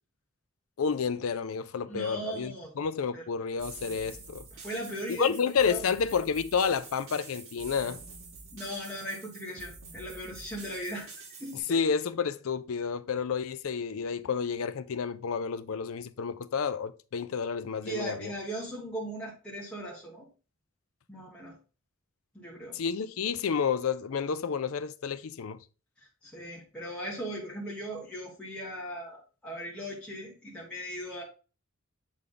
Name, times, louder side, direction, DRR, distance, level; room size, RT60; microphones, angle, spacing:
voice 1, 0.8-4.4 5.1-8.0 11.7-18.3 22.7-25.6, left 6 dB, 85° left, 0.5 m, -30 dB
voice 2, 1.9-2.7 3.1-3.2 4.6-5.8 8.5-11.1 11.4-11.8 17.8-20.2 21.1-21.5 22.3-22.8 26.2-31.2, right 1 dB, 5° left, 1.5 m, -38 dB
sound 1, 3.6-11.6, right 4 dB, 80° right, 1.5 m, -47 dB
8.0 x 3.6 x 3.8 m
head